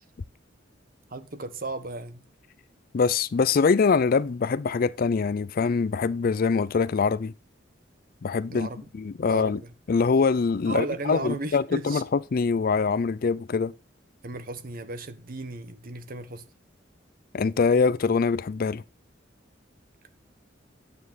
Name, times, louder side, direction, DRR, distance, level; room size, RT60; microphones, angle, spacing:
voice 1, 1.1-2.2 8.5-8.8 9.2-9.7 10.7-12.0 14.2-16.4, right 2 dB, 50° right, 1.3 m, -35 dB
voice 2, 2.9-7.3 8.2-8.7 8.9-9.6 9.9-13.7 17.3-18.8, left 5 dB, 50° left, 0.4 m, -24 dB
9.4 x 8.6 x 4.1 m
head